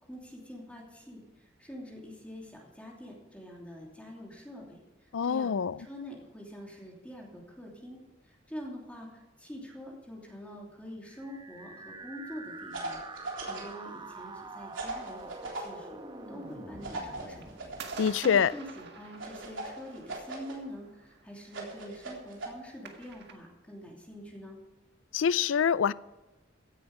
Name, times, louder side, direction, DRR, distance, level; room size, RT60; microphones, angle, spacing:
voice 1, 0.1-16.0 16.3-17.5 17.8-24.6, equal, 5° left, 2.9 m, -45 dB
voice 2, 5.1-5.7 18.0-18.5 25.1-25.9, left 7 dB, 80° left, 0.4 m, -25 dB
sound 1, 11.1-19.1, right 3 dB, 25° right, 1.1 m, -46 dB
sound 2, 12.7-13.7 14.7-15.7 16.8-18.1 19.2-20.5 21.5-22.5, right 2 dB, 85° right, 3.6 m, -39 dB
sound 3, 14.1-23.3, right 5 dB, 60° right, 1.7 m, -51 dB
16.0 x 10.5 x 4.9 m
head